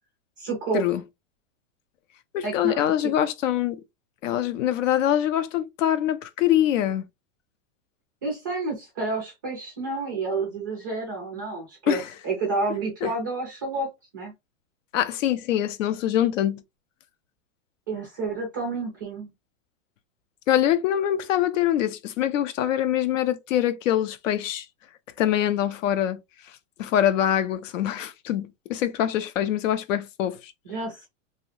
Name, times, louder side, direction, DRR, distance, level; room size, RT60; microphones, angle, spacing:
voice 1, 0.4-0.8 2.4-3.1 8.2-13.9 14.1-14.3 17.9-19.3 30.6-31.1, right 3 dB, 20° right, 0.3 m, -30 dB
voice 2, 2.3-3.8 4.2-7.1 11.9-12.1 13.0-13.1 14.9-16.6 20.5-24.7 25.2-26.2 26.8-30.5, left 11 dB, 75° left, 0.6 m, -24 dB
2.7 x 2.0 x 3.0 m
supercardioid pair, 170°, 39 cm